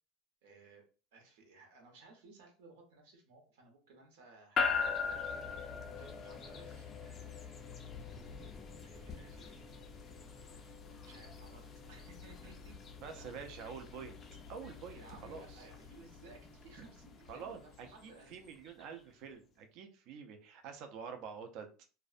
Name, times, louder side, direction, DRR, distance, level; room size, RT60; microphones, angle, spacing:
voice 1, 0.4-0.8 1.1-7.6 8.8-9.7 11.0-12.7 13.1-13.4 14.9-18.4, right 3 dB, 80° right, 2 dB, 0.8 m, -59 dB
sound 1, 4.6-18.8, left 6 dB, 25° left, 0.3 m, -42 dB
voice 2, 13.0-14.2 14.5-15.6 17.3-21.7, right 6 dB, 50° right, 6 dB, 0.4 m, -47 dB
2.5 x 2.1 x 2.4 m, 0.36 s
cardioid pair, 165°, 0 cm